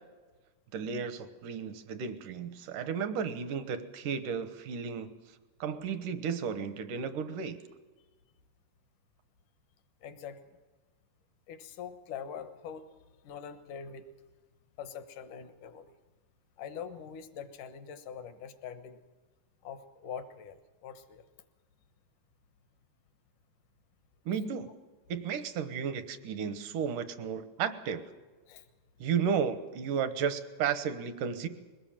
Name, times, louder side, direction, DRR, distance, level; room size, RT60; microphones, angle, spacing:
voice 1, 0.7-5.1 5.6-7.6 24.3-24.7 25.1-28.0 29.0-31.5, right 7 dB, 75° right, 11 dB, 2.7 m, -33 dB
voice 2, 10.0-10.4 11.5-12.9 13.2-14.1 14.8-15.9 16.6-19.0 19.6-21.2 28.5-28.6, left 7 dB, 75° left, 9 dB, 2.7 m, -43 dB
22.0 x 19.0 x 7.4 m, 1.3 s
omnidirectional pair, 3.8 m